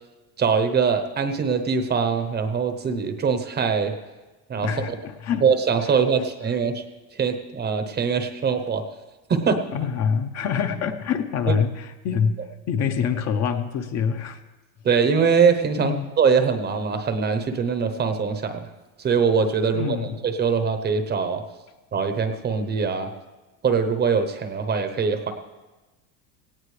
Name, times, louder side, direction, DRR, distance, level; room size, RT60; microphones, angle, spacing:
voice 1, 0.4-3.9 4.5-4.7 5.4-6.8 7.2-8.8 9.3-9.6 14.8-18.7 19.0-20.0 20.2-21.4 21.9-23.1 23.6-25.3, right 5 dB, 25° right, 7 dB, 0.9 m, -22 dB
voice 2, 4.6-5.5 5.8-6.0 9.7-12.4 12.7-14.4 15.8-16.1 19.7-20.2, left 7 dB, 40° left, 7 dB, 0.9 m, -25 dB
18.0 x 17.0 x 3.3 m, 1.2 s
cardioid pair, 150°, 43 cm